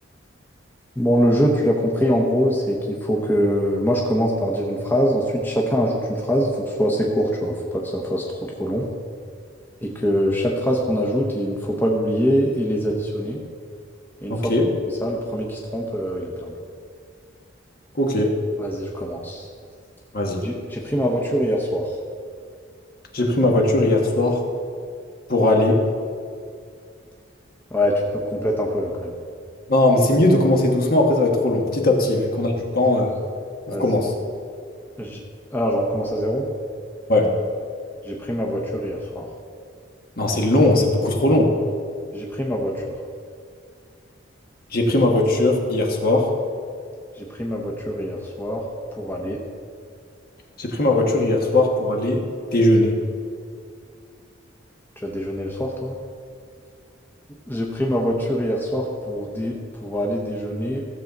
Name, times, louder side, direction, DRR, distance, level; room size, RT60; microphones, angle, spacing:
voice 1, 1.0-8.2 8.6-8.9 9.8-13.4 14.2-14.5 15.0-16.5 18.6-19.4 20.4-21.9 27.7-29.1 31.9-32.0 33.7-33.8 35.0-35.2 35.5-36.5 38.0-39.3 42.1-42.7 47.4-48.6 49.0-49.4 55.0-55.9 57.5-59.5 59.8-60.8, equal, 10° left, -2 dB, 0.9 m, -23 dB
voice 2, 14.3-14.7 18.0-18.4 20.1-20.4 23.1-24.4 25.3-25.8 29.7-33.1 33.7-34.1 37.1-37.3 40.2-41.5 44.7-46.3 50.6-52.2 52.5-53.0, left 1 dB, 50° left, 1 dB, 1.4 m, -19 dB
15.0 x 7.2 x 4.0 m, 2.2 s
head